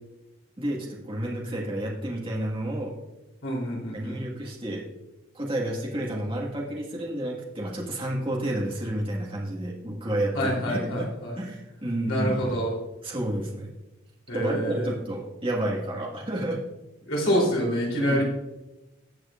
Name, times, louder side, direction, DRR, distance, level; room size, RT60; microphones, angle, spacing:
voice 1, 0.6-2.9 3.9-4.8 5.3-11.1 11.4-12.5 13.0-13.7 14.3-16.6 17.9-18.2, right 1 dB, 25° right, -3 dB, 1.6 m, -30 dB
voice 2, 3.4-4.2 10.3-11.4 12.1-12.8 14.3-14.9 17.0-18.2, equal, 75° left, -4 dB, 3.3 m, -27 dB
18.0 x 6.3 x 2.5 m, 1.0 s
head